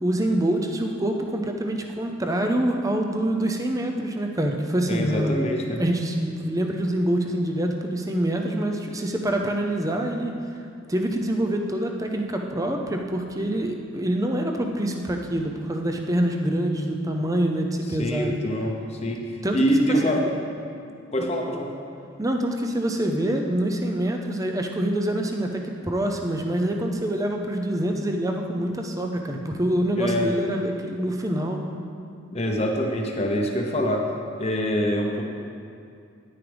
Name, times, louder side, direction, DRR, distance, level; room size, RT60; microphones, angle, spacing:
voice 1, 0.0-5.3 5.8-10.4 10.9-18.4 19.4-19.6 20.1-20.2 22.2-31.6, right 1 dB, 15° right, 3 dB, 0.6 m, -25 dB
voice 2, 4.9-5.8 18.0-19.2 19.5-20.3 21.1-21.8 30.0-30.3 32.3-34.1 34.4-35.2, equal, 30° left, 1 dB, 0.9 m, -24 dB
10.5 x 9.6 x 3.4 m, 2.4 s
head